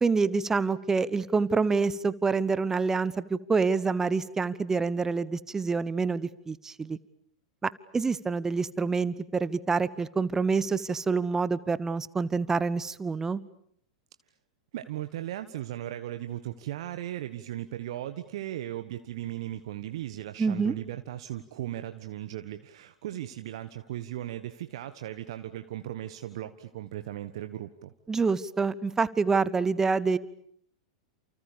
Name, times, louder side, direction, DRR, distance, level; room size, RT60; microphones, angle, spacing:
voice 1, 0.0-7.0 7.6-13.4 20.4-20.7 28.1-30.2, right 4 dB, 15° right, 18 dB, 1.1 m, -27 dB
voice 2, 14.7-27.9, right 13 dB, 60° right, 9 dB, 1.5 m, -37 dB
30.0 x 29.0 x 6.9 m, 0.64 s
figure-of-eight pair, 95°, 3 cm